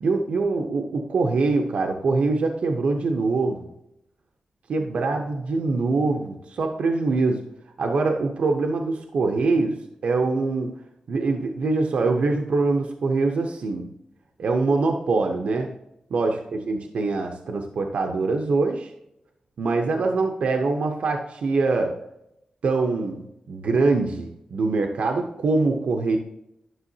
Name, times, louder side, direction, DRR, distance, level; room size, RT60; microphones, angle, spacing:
voice 1, 0.0-3.7 4.7-7.5 7.8-10.8 11.1-13.9 14.4-15.7 16.1-18.9 19.6-22.0 22.6-26.2, right 3 dB, 75° right, 3 dB, 0.8 m, -24 dB
11.0 x 6.2 x 2.8 m, 0.82 s
wide cardioid pair, 120°, 2 cm